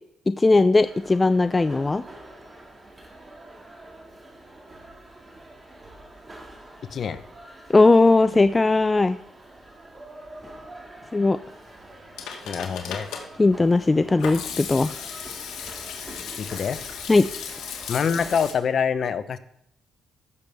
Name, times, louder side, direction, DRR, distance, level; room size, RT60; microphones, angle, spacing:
voice 1, 0.3-2.0 7.7-9.2 11.1-11.4 13.4-14.9 17.1-17.3, left 3 dB, 20° left, 11 dB, 0.3 m, -18 dB
Fish Market in Olhão Portugal, 0.8-18.5, right 1 dB, 25° right, 2.2 m, -45 dB
Hands / Sink (filling or washing), 11.9-18.5, left 7 dB, 85° left, 1.6 m, -36 dB
voice 2, 12.4-13.1 16.4-16.8 17.9-19.4, left 6 dB, 55° left, 12 dB, 0.7 m, -25 dB
15.0 x 6.8 x 3.5 m, 0.74 s
cardioid pair, 90°, 0 cm